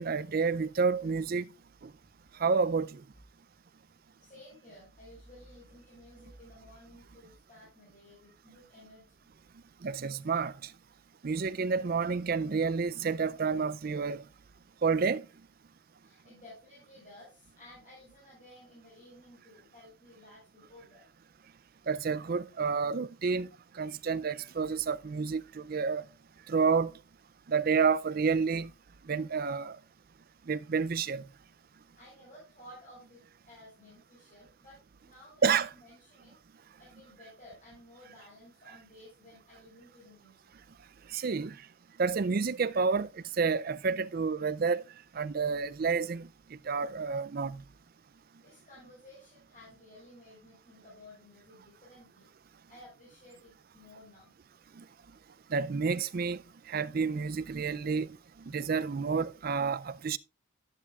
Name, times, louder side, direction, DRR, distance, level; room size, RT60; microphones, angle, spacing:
voice 1, 0.0-1.5 1.8-1.9 2.4-3.0 9.8-10.5 11.2-14.2 14.8-15.2 21.9-23.5 23.8-26.0 26.5-26.9 27.5-28.7 29.1-29.8 30.5-31.2 35.4-35.7 41.1-41.6 42.0-43.1 43.4-44.8 45.1-47.6 55.5-56.4 56.7-58.1 58.5-60.2, right 5 dB, 45° right, 0.4 m, -29 dB
voice 2, 4.2-9.3 16.0-21.1 31.9-35.4 35.7-36.4 36.8-40.5 48.4-54.3, left 1 dB, 35° left, 5.9 m, -55 dB
11.5 x 11.0 x 2.4 m
head